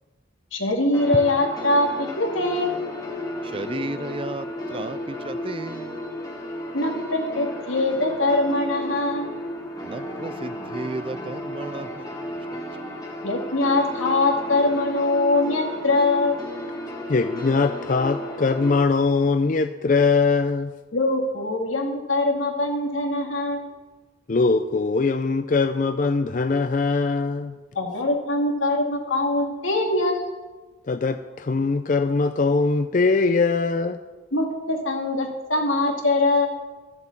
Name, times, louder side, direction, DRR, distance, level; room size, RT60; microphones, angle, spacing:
voice 1, 0.5-1.9 2.2-2.7 6.7-9.3 13.2-16.4 20.9-23.7 27.7-30.4 34.3-36.6, left 2 dB, 90° left, 1 dB, 2.3 m, -23 dB
sound 1, 0.9-18.8, left 1 dB, 20° left, 1.6 m, -33 dB
voice 2, 3.4-6.0 9.8-12.1, right 3 dB, 30° right, 13 dB, 0.4 m, -34 dB
voice 3, 17.1-20.7 24.3-27.6 30.9-34.0, left 4 dB, 40° left, 9 dB, 0.4 m, -21 dB
12.5 x 7.8 x 7.2 m, 1.2 s
head